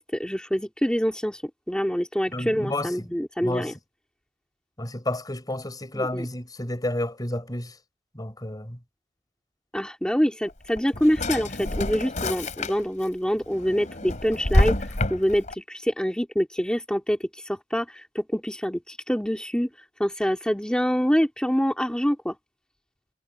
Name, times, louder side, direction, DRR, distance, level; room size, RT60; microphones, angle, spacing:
voice 1, 0.0-1.4 1.7-3.7 5.9-6.3 9.7-19.7 20.0-22.4, equal, 5° left, 2.6 m, -26 dB
voice 2, 2.3-3.1 3.4-3.7 4.8-7.7 8.1-8.8, left 1 dB, 20° left, 4.7 m, -31 dB
Drawer open or close, 10.5-13.1 13.5-15.5, left 1 dB, 45° left, 3.3 m, -27 dB
head